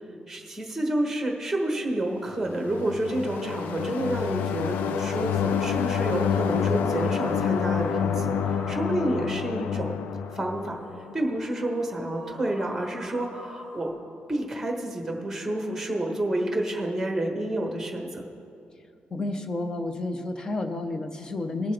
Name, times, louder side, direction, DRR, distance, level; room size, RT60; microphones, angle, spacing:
voice 1, 0.3-9.9 10.3-10.8 11.1-13.9 14.3-18.2, right 1 dB, 5° right, 1 dB, 1.2 m, -29 dB
sound 1, 2.4-11.1, left 7 dB, 85° left, 0.5 m, -28 dB
sound 2, 6.4-13.9, equal, 40° left, 2.7 m, -46 dB
voice 2, 19.1-21.7, left 2 dB, 25° left, 8 dB, 0.7 m, -30 dB
20.0 x 7.3 x 3.4 m, 2.4 s
cardioid pair, 175°, 3 cm